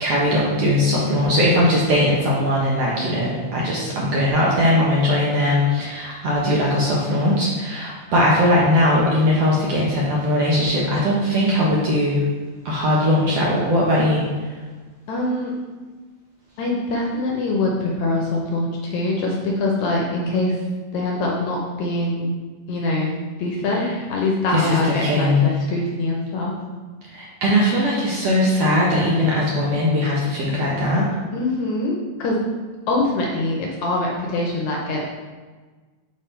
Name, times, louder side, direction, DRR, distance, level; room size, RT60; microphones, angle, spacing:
voice 1, 0.0-12.2 12.6-14.3 24.5-25.5 27.1-31.1, left 1 dB, 65° right, -5 dB, 1.6 m, -19 dB
voice 2, 15.1-15.5 16.6-20.6 20.9-22.3 22.7-23.1 23.4-26.6 31.3-32.5 32.9-35.1, left 2 dB, 75° left, -2 dB, 1.8 m, -23 dB
6.6 x 3.6 x 4.3 m, 1.4 s
omnidirectional pair, 3.8 m